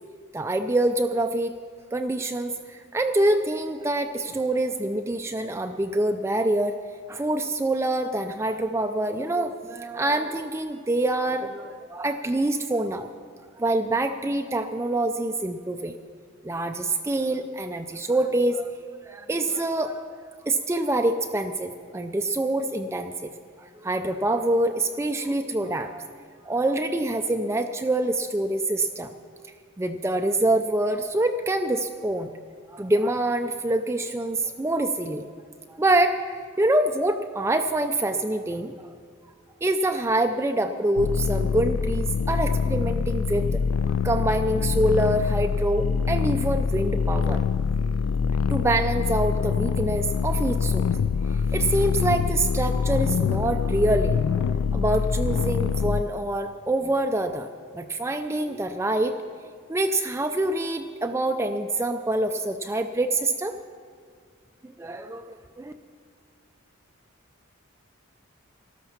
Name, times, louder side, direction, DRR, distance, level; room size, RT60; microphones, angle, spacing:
voice 1, 0.3-1.5 1.9-6.8 7.1-13.1 13.6-15.9 16.4-18.7 19.0-20.0 20.5-23.3 23.6-26.1 26.4-29.1 29.8-32.3 32.7-35.2 35.7-38.9 39.6-43.6 44.0-47.4 48.5-50.9 51.3-54.2 54.7-57.5 57.7-59.1 59.7-63.6 64.6-65.7, right 1 dB, 15° right, 7 dB, 0.3 m, -25 dB
sound 1, 41.0-56.0, left 6 dB, 85° left, 0.3 m, -25 dB
13.0 x 13.0 x 5.8 m, 2.1 s
head